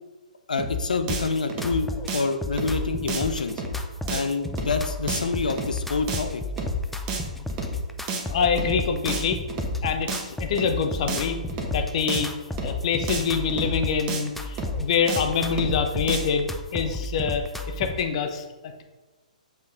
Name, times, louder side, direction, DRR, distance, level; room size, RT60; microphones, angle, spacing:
voice 1, 0.5-3.6 4.1-6.4, left 4 dB, 75° left, 8 dB, 0.7 m, -27 dB
sound 1, 0.6-0.8 1.1-1.2 1.5-1.8 2.1-2.2 2.6-2.8 3.1-3.2 3.5-3.8 4.1-4.2 4.6-4.8 5.1-5.2 5.5-5.8 6.1-6.2 6.6-6.8 7.1-7.2 7.5-7.8 8.1-8.2 8.6-8.8 9.1-9.2 9.5-9.8 10.1-10.2 10.6-10.8 11.1-11.2 11.5-11.8 12.1-12.2 12.6-12.8 13.1-13.2 13.5-13.8 14.1-14.2 14.6-14.8 15.1-15.2 15.5-15.8 16.1-16.2, right 1 dB, 25° right, 1.2 m, -30 dB
sound 2, 1.1-18.1, left 1 dB, 5° left, 0.5 m, -34 dB
voice 2, 8.3-9.4 9.8-11.4 11.7-12.3 12.6-18.8, left 6 dB, 50° left, 6 dB, 0.9 m, -26 dB
7.1 x 5.3 x 3.9 m, 1.2 s
figure-of-eight pair, 130°, 4 cm